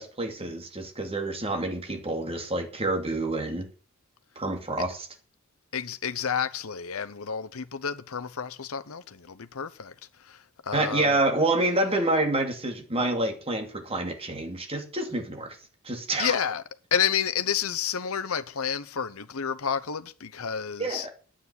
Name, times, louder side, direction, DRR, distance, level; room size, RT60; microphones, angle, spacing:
voice 1, 0.0-3.7 4.4-5.1 10.7-15.6 15.8-16.3 20.8-21.1, right 2 dB, 25° right, 2.5 m, -28 dB
voice 2, 5.7-9.9 10.2-11.2 16.2-16.6 16.9-21.1, left 7 dB, 75° left, 0.9 m, -30 dB
9.8 x 8.7 x 9.5 m
head